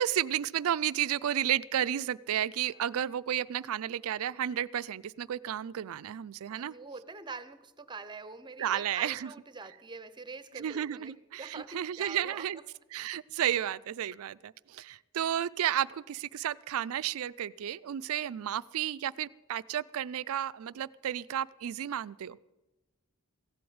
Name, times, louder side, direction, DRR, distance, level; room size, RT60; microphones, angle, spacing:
voice 1, 0.0-6.7 8.6-9.3 10.6-12.6 12.9-22.4, right 10 dB, 70° right, 18 dB, 0.4 m, -32 dB
voice 2, 6.5-12.4, right 4 dB, 20° right, 13 dB, 0.7 m, -45 dB
16.0 x 7.8 x 8.7 m, 1.0 s
head